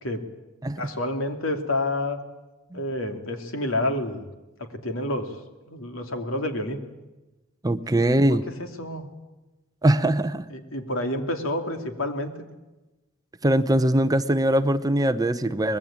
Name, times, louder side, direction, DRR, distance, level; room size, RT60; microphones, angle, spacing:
voice 1, 0.8-2.2 2.7-4.2 4.6-5.3 5.7-6.8 8.3-8.4 8.8-9.1 10.5-12.3, left 1 dB, 80° left, 6 dB, 2.8 m, -28 dB
voice 2, 7.6-8.4 9.8-10.4 13.4-15.8, right 1 dB, 20° right, 12 dB, 0.8 m, -21 dB
24.5 x 20.5 x 8.8 m, 1.1 s
head